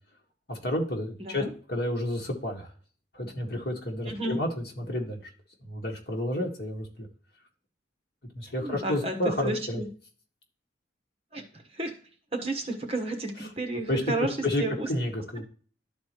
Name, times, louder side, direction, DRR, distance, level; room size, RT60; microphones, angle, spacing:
voice 1, 0.5-2.7 3.1-5.2 5.6-7.1 8.4-9.8 13.9-14.0 14.4-14.6 14.9-15.4, left 1 dB, 55° left, 1 dB, 1.8 m, -30 dB
voice 2, 1.2-1.5 4.1-4.4 8.5-9.2 9.4-9.9 11.3-11.9 12.3-14.9, right 2 dB, 30° right, 4 dB, 1.3 m, -32 dB
12.5 x 4.2 x 3.1 m, 0.42 s
head